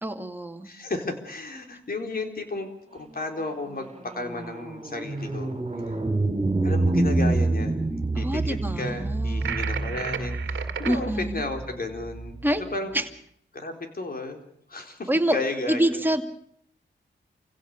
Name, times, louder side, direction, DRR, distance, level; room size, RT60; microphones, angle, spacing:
voice 1, 0.0-0.7 8.1-9.6 10.8-11.4 12.4-12.6 12.9-13.1 15.1-15.4 15.7-16.2, right 1 dB, 10° right, 5 dB, 2.3 m, -26 dB
voice 2, 0.6-5.6 6.6-7.8 8.2-12.9 13.5-14.4 14.7-16.0, left 2 dB, 50° left, 4 dB, 4.2 m, -33 dB
sound 1, 3.1-12.6, right 2 dB, 30° right, 3.2 m, -28 dB
sound 2, 9.4-11.0, right 8 dB, 85° right, 1.9 m, -33 dB
28.5 x 16.5 x 6.7 m, 0.68 s
cardioid pair, 70°, 19 cm